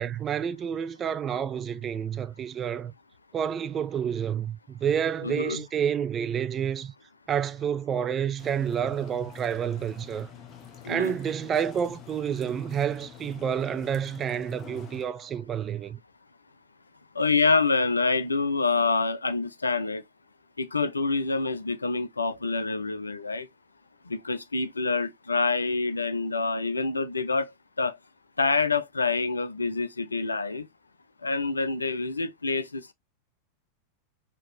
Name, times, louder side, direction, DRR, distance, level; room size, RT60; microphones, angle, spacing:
voice 1, 0.0-2.9 3.3-6.9 7.3-10.3 10.9-16.0, right 8 dB, 25° right, 0.4 m, -29 dB
voice 2, 5.2-5.6 10.8-11.1 17.1-20.0 20.6-23.5 24.1-27.5 27.8-28.0 28.4-30.7 31.2-32.9, left 4 dB, 80° left, 0.4 m, -26 dB
sound 1, 8.4-15.1, left 8 dB, 30° left, 0.8 m, -47 dB
4.1 x 2.9 x 3.1 m
figure-of-eight pair, 90°, 0 cm